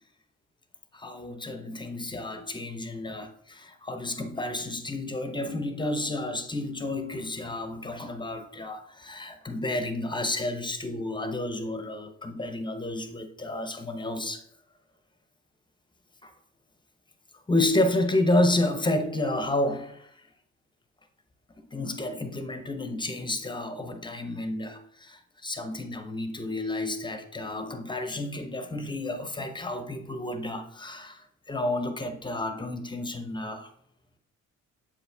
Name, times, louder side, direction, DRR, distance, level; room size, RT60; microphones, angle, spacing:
voice 1, 0.9-14.4 16.2-16.3 17.5-20.1 21.7-33.7, left 2 dB, 15° left, 0.8 m, -30 dB
7.3 x 4.4 x 3.5 m
cardioid pair, 90°, 30 cm